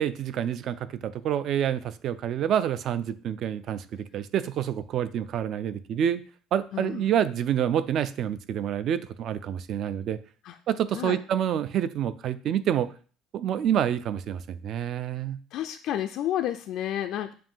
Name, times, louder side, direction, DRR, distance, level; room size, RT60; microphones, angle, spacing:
voice 1, 0.0-6.2 6.5-10.2 10.7-12.9 13.3-15.4, right 9 dB, 40° right, 14 dB, 0.4 m, -27 dB
voice 2, 6.7-7.1 10.4-10.6 10.9-11.2 15.5-17.3, left 11 dB, 50° left, 6 dB, 0.4 m, -30 dB
7.6 x 2.6 x 5.4 m, 0.41 s
cardioid pair, 170°, 0 cm